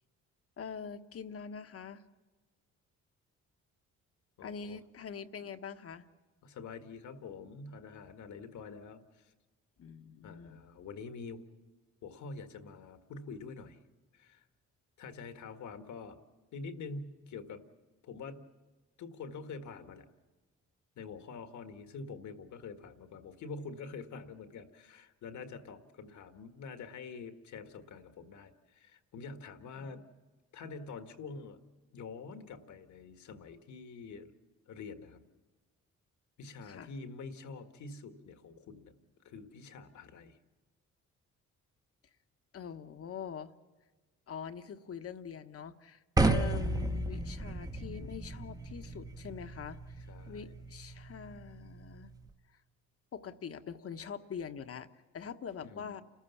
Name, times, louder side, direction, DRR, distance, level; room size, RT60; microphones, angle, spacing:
voice 1, 0.6-2.0 4.4-6.1 9.8-10.6 29.8-30.1 36.6-36.9 42.5-43.5 44.3-52.1 53.1-54.9 55.1-56.0, left 7 dB, 50° left, 9 dB, 1.2 m, -44 dB
voice 2, 4.4-4.8 6.4-9.3 10.2-11.4 12.0-13.8 14.1-14.4 15.0-16.2 16.5-17.6 18.0-18.4 19.0-20.1 21.0-30.0 30.5-31.6 31.9-34.3 34.7-35.2 36.4-39.0 39.2-40.4 50.1-50.5 55.6-56.0, left 4 dB, 70° left, 8 dB, 1.8 m, -46 dB
sound 1, 46.2-52.3, right 2 dB, 10° right, 1.0 m, -34 dB
29.5 x 14.0 x 7.1 m, 1.3 s
cardioid pair, 90°, 30 cm